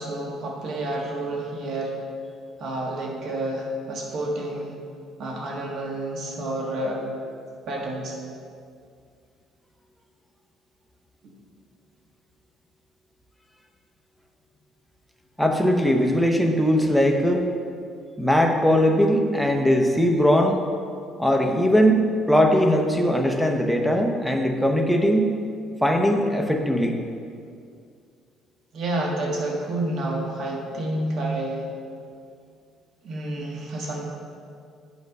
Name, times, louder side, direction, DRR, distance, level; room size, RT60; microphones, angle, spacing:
voice 1, 0.0-2.0 2.6-4.7 5.2-7.0 7.7-8.2 28.7-31.7 33.0-34.1, right 1 dB, 55° right, -1 dB, 1.5 m, -29 dB
voice 2, 15.4-17.5 18.2-20.6 21.2-25.3 25.8-27.0, equal, ahead, 2 dB, 0.7 m, -20 dB
8.4 x 5.4 x 5.4 m, 2.3 s
cardioid pair, 155°, 0 cm